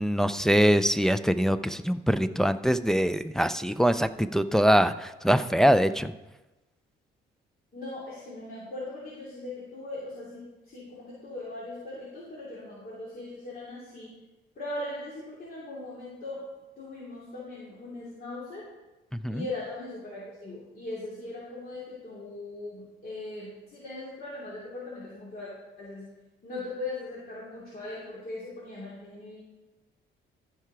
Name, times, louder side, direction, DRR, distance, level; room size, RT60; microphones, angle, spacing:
voice 1, 0.0-6.1 19.1-19.4, equal, ahead, 10 dB, 0.4 m, -23 dB
voice 2, 7.7-14.1 14.5-16.4 16.8-18.7 19.3-25.5 25.8-26.1 26.4-29.4, left 2 dB, 50° left, -7 dB, 2.8 m, -39 dB
14.0 x 4.8 x 4.7 m, 1.1 s
cardioid pair, 90°, 20 cm